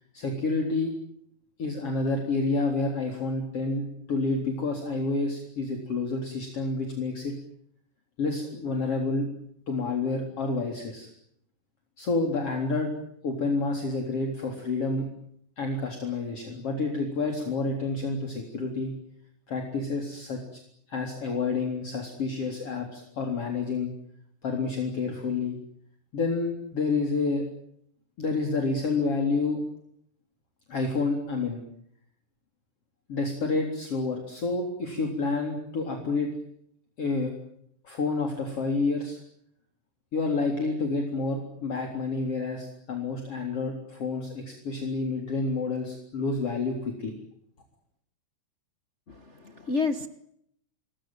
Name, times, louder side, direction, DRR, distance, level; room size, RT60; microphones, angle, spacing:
voice 1, 0.1-0.9 1.6-7.3 8.2-9.3 9.7-11.1 12.0-12.9 13.2-15.1 15.6-18.9 19.5-20.6 20.9-23.9 24.4-25.6 26.1-27.5 28.2-29.6 30.7-31.6 33.1-36.3 37.0-37.3 37.8-39.2 40.1-47.2, left 3 dB, 45° left, 2 dB, 4.5 m, -29 dB
voice 2, 49.1-50.1, left 4 dB, 70° left, 8 dB, 0.6 m, -30 dB
29.0 x 21.0 x 9.1 m, 0.72 s
omnidirectional pair, 3.6 m